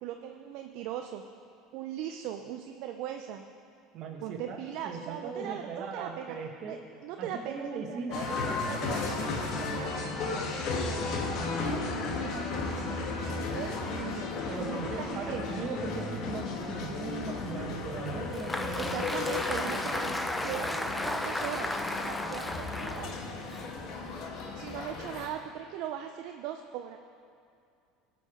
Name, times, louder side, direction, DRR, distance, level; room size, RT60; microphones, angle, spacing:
voice 1, 0.0-1.2 1.7-3.4 4.2-6.4 6.7-6.8 7.0-7.6 7.9-8.3 8.7-14.3 14.7-15.5 18.8-20.1 20.4-23.2 24.6-27.0, right 10 dB, 65° right, 5 dB, 0.5 m, -40 dB
voice 2, 3.9-4.6 4.8-6.8 7.2-8.4 14.5-20.1, right 4 dB, 50° right, 2 dB, 1.5 m, -39 dB
sound 1, 8.1-25.3, left 3 dB, 55° left, 1.4 m, -34 dB
Applause, 18.1-24.4, left 1 dB, 5° left, 0.5 m, -35 dB
17.5 x 5.9 x 5.0 m, 2.4 s
supercardioid pair, 120°, 0 cm